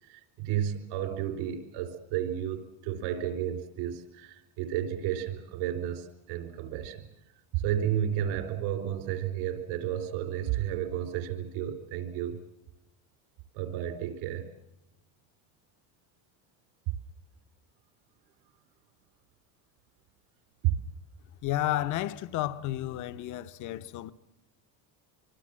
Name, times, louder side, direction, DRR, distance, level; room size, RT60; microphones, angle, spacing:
voice 1, 0.1-7.1 7.5-12.4 13.5-14.5 20.6-20.7, right 11 dB, 75° right, 3.7 m, -32 dB
voice 2, 21.4-24.1, left 14 dB, 45° left, 0.9 m, -32 dB
24.5 x 24.5 x 7.6 m
cardioid pair, 155°, 41 cm